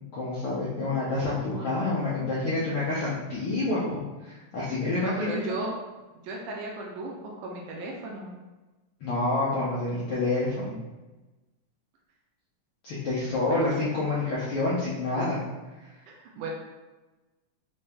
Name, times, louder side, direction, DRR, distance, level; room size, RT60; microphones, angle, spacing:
voice 1, 0.1-5.6 9.0-10.7 12.8-15.4, left 2 dB, 80° left, -9 dB, 1.2 m, -28 dB
voice 2, 5.0-5.8 6.2-8.3 13.5-13.7 16.1-16.5, right 2 dB, 85° right, -1 dB, 2.1 m, -35 dB
5.3 x 2.8 x 3.5 m, 1.1 s
omnidirectional pair, 3.7 m